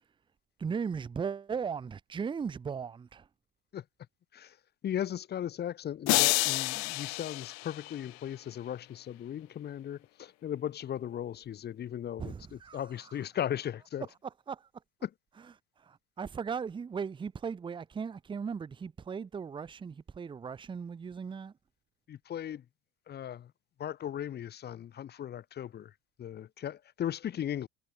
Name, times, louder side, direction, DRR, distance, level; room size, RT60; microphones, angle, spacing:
voice 1, 0.6-3.3 12.2-12.8 14.5-14.7 15.8-21.5, right 6 dB, 15° right, 1.0 m, -37 dB
voice 2, 4.8-14.1 15.0-15.1 22.1-22.6 23.1-23.5 23.8-25.9 26.2-27.7, left 10 dB, 30° left, 2.5 m, -37 dB
sound 1, 6.1-8.3, left 26 dB, 60° left, 1.2 m, -29 dB
supercardioid pair, 135°, 31 cm